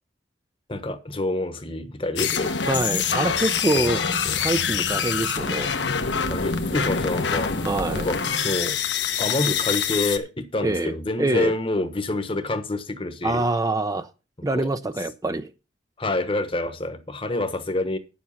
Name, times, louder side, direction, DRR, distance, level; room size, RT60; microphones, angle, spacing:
voice 1, 0.7-2.6 3.7-3.9 4.2-4.4 6.3-7.5 7.9-8.8 9.2-13.5 14.5-14.7 16.0-18.0, left 2 dB, 30° left, 1.1 m, -27 dB
sound 1, 2.2-10.2, left 6 dB, 75° left, 1.1 m, -25 dB
voice 2, 2.7-4.0 4.4-5.7 7.6-8.1 10.6-11.5 13.2-14.1 14.4-15.5, right 2 dB, 20° right, 0.5 m, -25 dB
9.5 x 7.3 x 5.6 m
head